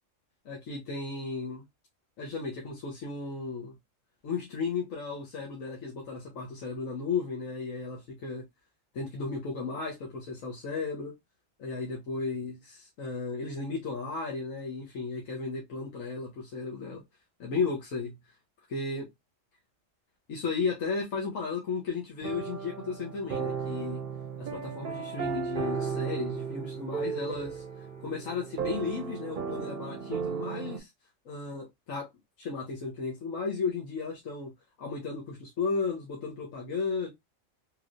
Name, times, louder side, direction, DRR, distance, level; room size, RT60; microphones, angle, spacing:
voice 1, 0.4-1.6 2.2-3.7 4.2-8.4 8.9-11.1 11.6-17.0 17.4-18.2 18.7-19.1 20.3-24.0 24.4-27.6 28.0-30.9 31.2-32.1 32.4-34.5 34.8-37.1, left 4 dB, 85° left, 1.3 m, -34 dB
sound 1, 22.2-30.8, right 6 dB, 55° right, 0.6 m, -35 dB
3.1 x 3.0 x 2.4 m
omnidirectional pair, 1.3 m